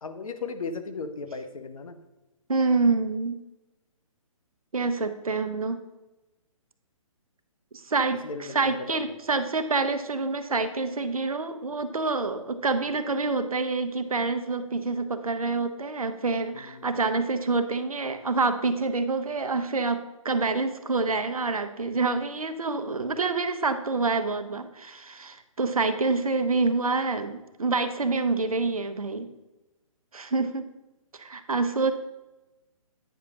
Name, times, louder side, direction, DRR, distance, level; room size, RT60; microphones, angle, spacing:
voice 1, 0.0-2.0 8.2-9.0 16.5-16.9, left 4 dB, 75° left, 9 dB, 0.8 m, -36 dB
voice 2, 2.5-3.4 4.7-5.8 7.9-29.3 30.1-30.6 31.1-31.9, right 3 dB, 85° right, 10 dB, 0.7 m, -27 dB
9.1 x 6.1 x 2.9 m, 1.0 s
figure-of-eight pair, 140°, 18 cm